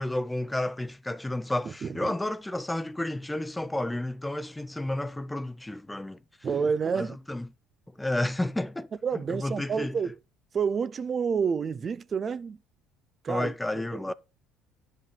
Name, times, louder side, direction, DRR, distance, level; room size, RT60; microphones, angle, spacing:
voice 1, 0.0-6.2 6.9-7.5 8.0-8.9 9.3-10.0 13.3-14.1, left 1 dB, 10° left, 0.5 m, -31 dB
voice 2, 1.6-2.2 6.4-7.2 9.0-10.2 10.5-12.6 13.2-14.1, right 6 dB, 40° right, 0.5 m, -29 dB
10.5 x 5.2 x 5.2 m
hypercardioid pair, 70°, 0 cm